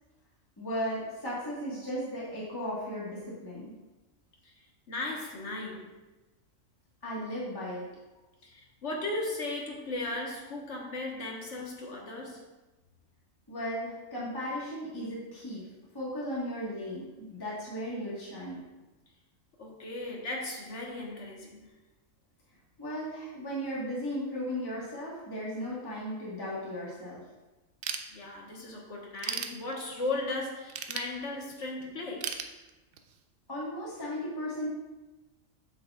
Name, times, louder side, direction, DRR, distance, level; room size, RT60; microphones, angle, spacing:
voice 1, 0.6-3.7 7.0-7.8 13.5-15.6 15.9-18.6 22.8-27.2 33.5-34.7, equal, 20° left, -7 dB, 1.4 m, -36 dB
voice 2, 4.9-5.9 8.4-12.5 19.6-21.7 28.1-32.4, left 2 dB, 60° left, -1 dB, 1.5 m, -36 dB
Ratchet pawl / Tools, 27.8-28.6 29.0-30.1 30.7-31.7 32.2-33.2, right 7 dB, 60° right, 0.6 m, -36 dB
7.9 x 6.6 x 2.3 m, 1.1 s
omnidirectional pair, 1.4 m